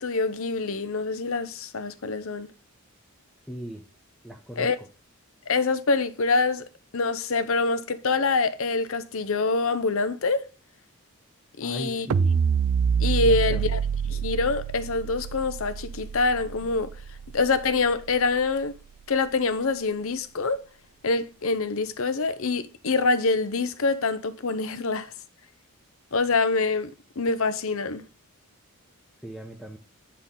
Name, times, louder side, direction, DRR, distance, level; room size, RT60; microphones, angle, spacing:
voice 1, 0.0-2.5 4.6-4.8 5.5-6.7 6.9-10.5 11.6-12.1 13.0-13.8 14.1-16.9 17.3-18.8 19.1-20.6 21.0-25.1 26.1-26.9 27.2-28.0, left 3 dB, 65° left, 0.7 m, -25 dB
voice 2, 3.5-3.8 4.2-4.9 11.6-12.4 13.2-13.7 29.2-29.8, equal, ahead, 0.8 m, -38 dB
sound 1, 12.1-18.4, right 7 dB, 70° right, 0.4 m, -27 dB
8.4 x 5.7 x 3.7 m
head